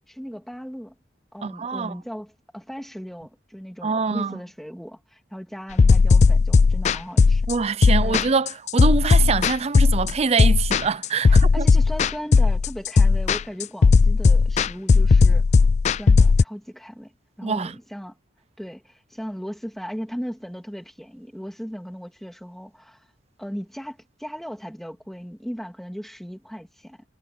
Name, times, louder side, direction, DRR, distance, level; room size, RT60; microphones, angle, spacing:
voice 1, 0.1-0.9 1.3-7.4 8.0-8.2 11.3-15.4 16.0-17.1 17.4-18.1 18.6-23.0 23.4-27.0, equal, ahead, 2.9 m, -37 dB
voice 2, 1.4-2.0 3.8-4.4 7.5-11.7 17.4-17.8, right 5 dB, 35° right, 0.5 m, -24 dB
sound 1, 5.8-16.4, left 4 dB, 40° left, 0.3 m, -16 dB
head